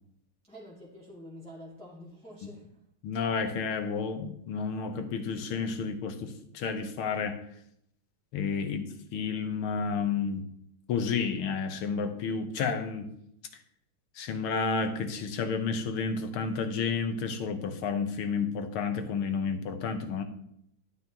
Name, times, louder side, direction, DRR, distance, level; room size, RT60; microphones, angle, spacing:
voice 1, 0.5-2.8, equal, 5° left, -6 dB, 1.6 m, -47 dB
voice 2, 3.0-7.4 8.3-10.4 10.9-13.1 14.2-20.2, left 5 dB, 75° left, 7 dB, 1.9 m, -31 dB
11.5 x 9.6 x 3.0 m, 0.72 s
omnidirectional pair, 2.4 m